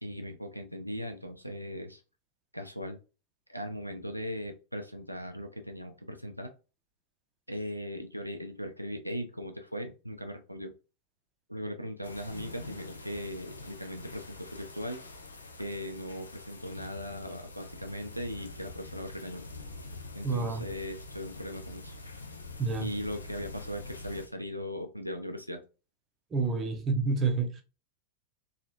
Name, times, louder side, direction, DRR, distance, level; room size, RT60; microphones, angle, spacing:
voice 1, 0.0-2.0 2.5-3.0 3.5-6.5 7.5-10.7 11.5-15.0 15.6-19.4 20.1-22.0 22.8-25.6, equal, 90° right, 0.4 m, -38 dB
sound 1, 12.0-24.3, left 3 dB, 75° left, 0.4 m, -45 dB
voice 2, 20.2-20.7 22.6-22.9 26.3-27.6, right 4 dB, 25° right, 0.6 m, -29 dB
3.0 x 2.3 x 2.5 m
figure-of-eight pair, 90°, 0 cm